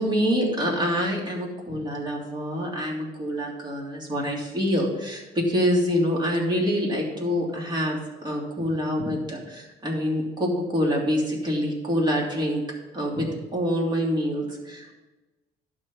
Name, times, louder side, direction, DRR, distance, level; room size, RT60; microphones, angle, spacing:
voice 1, 0.0-12.6 12.9-15.0, equal, 25° right, -2 dB, 3.0 m, -26 dB
11.5 x 4.5 x 7.2 m, 1.1 s
cardioid pair, 110°, 17 cm